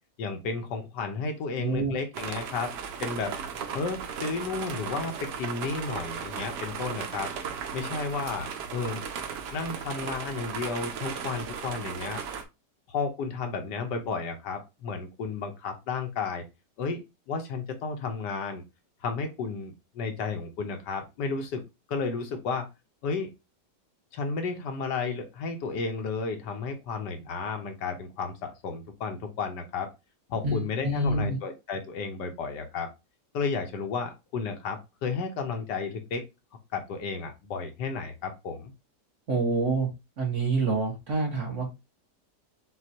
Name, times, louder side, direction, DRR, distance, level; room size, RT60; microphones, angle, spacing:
voice 1, 0.2-2.7 3.0-3.4 3.7-7.3 7.7-9.0 9.5-12.2 12.9-16.4 16.8-17.0 17.3-18.6 19.0-21.6 21.9-22.7 23.0-23.3 24.1-29.9 30.3-32.9 33.3-36.3 36.7-38.7, left 4 dB, 80° left, 5 dB, 1.5 m, -32 dB
voice 2, 1.6-1.9 30.4-31.4 39.3-39.9 40.2-41.7, right 3 dB, 50° right, 0 dB, 1.6 m, -27 dB
sound 1, 2.1-12.4, right 6 dB, 80° right, 1.3 m, -36 dB
6.2 x 2.4 x 2.8 m, 0.24 s
omnidirectional pair, 1.8 m